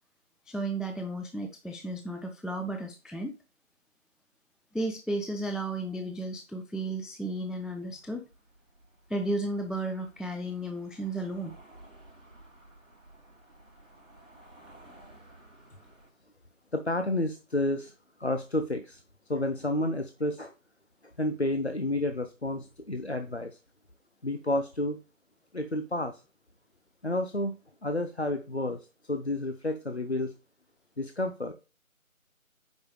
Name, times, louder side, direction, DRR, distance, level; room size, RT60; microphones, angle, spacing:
voice 1, 0.5-3.4 4.7-8.2 9.1-11.6, right 1 dB, ahead, 4 dB, 0.4 m, -33 dB
sound 1, 7.5-16.1, right 1 dB, 60° right, 4.2 m, -55 dB
voice 2, 16.7-17.9 18.2-19.0 19.3-20.5 21.2-23.6 24.2-25.0 25.5-26.2 27.0-30.3 31.0-31.5, left 1 dB, 50° left, 7 dB, 0.7 m, -30 dB
8.9 x 5.3 x 3.1 m, 0.32 s
figure-of-eight pair, 180°, 42 cm